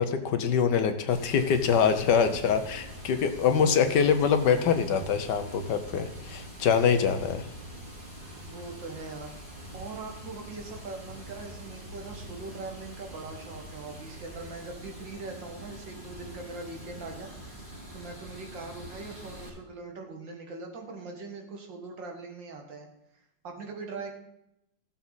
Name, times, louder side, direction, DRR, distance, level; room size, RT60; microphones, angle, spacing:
voice 1, 0.0-7.5, left 7 dB, 70° left, 8 dB, 1.5 m, -24 dB
Water, 1.1-19.5, equal, 45° right, 4.1 m, -44 dB
voice 2, 8.4-9.3 9.7-22.9 23.4-24.1, right 3 dB, 75° right, 3 dB, 2.4 m, -41 dB
15.5 x 7.2 x 4.0 m, 0.81 s
omnidirectional pair, 2.0 m